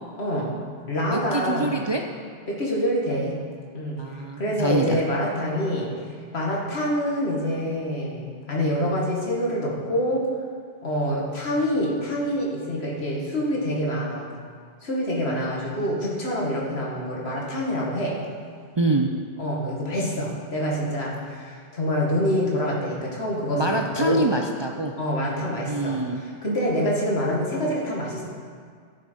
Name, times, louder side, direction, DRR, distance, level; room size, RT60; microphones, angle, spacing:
voice 1, 0.2-0.5 0.9-1.7 2.5-3.4 3.7-4.0 4.4-5.9 6.3-10.3 10.8-14.2 14.8-18.2 19.4-24.3 25.0-28.2, equal, 70° left, -3 dB, 2.1 m, -26 dB
voice 2, 1.1-2.0 4.0-5.0 18.8-19.1 23.5-24.9 25.7-26.2, right 2 dB, 35° right, 2 dB, 0.5 m, -25 dB
13.0 x 6.8 x 5.3 m, 2.1 s
omnidirectional pair, 1.1 m